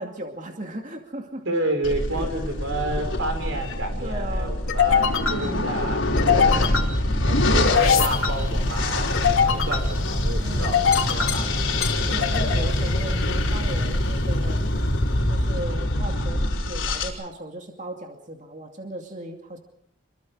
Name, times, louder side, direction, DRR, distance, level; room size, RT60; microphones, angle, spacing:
voice 1, 0.0-1.4 2.2-2.3 4.0-4.6 5.2-5.7 6.3-6.7 10.4-10.8 12.0-14.6 15.3-19.6, right 1 dB, 35° right, 3 dB, 2.5 m, -36 dB
voice 2, 1.5-6.7 7.2-11.6, right 2 dB, 70° right, 5 dB, 5.8 m, -30 dB
sound 1, 1.8-17.1, left 1 dB, 70° left, 4.7 m, -25 dB
sound 2, 2.4-15.1, left 5 dB, 90° left, 2.7 m, -25 dB
sound 3, 6.2-15.4, right 1 dB, 20° right, 6.8 m, -43 dB
27.0 x 23.0 x 5.0 m, 0.71 s
head